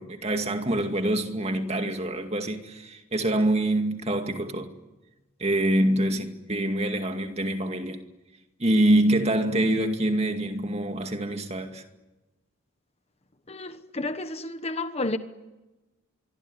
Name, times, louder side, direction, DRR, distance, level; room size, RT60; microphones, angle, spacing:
voice 1, 0.0-4.7 5.4-8.0 8.6-11.8, right 1 dB, 30° right, 2.2 m, -25 dB
voice 2, 13.5-15.2, left 2 dB, 30° left, 1.2 m, -31 dB
25.0 x 23.5 x 9.8 m
head